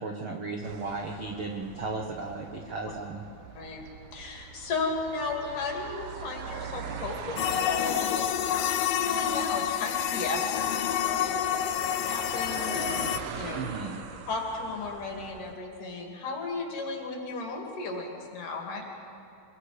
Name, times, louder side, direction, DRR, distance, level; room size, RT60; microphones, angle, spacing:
voice 1, 0.0-3.2 13.5-14.0, right 3 dB, 90° right, 1 dB, 1.1 m, -35 dB
sound 1, 0.6-15.5, right 7 dB, 65° right, 2.2 m, -42 dB
voice 2, 4.1-11.6 12.0-13.7 14.3-18.8, left 3 dB, 60° left, 1 dB, 3.9 m, -35 dB
sound 2, 7.4-13.2, left 10 dB, 85° left, 2.6 m, -28 dB
25.5 x 21.5 x 5.0 m, 2.9 s
omnidirectional pair, 4.3 m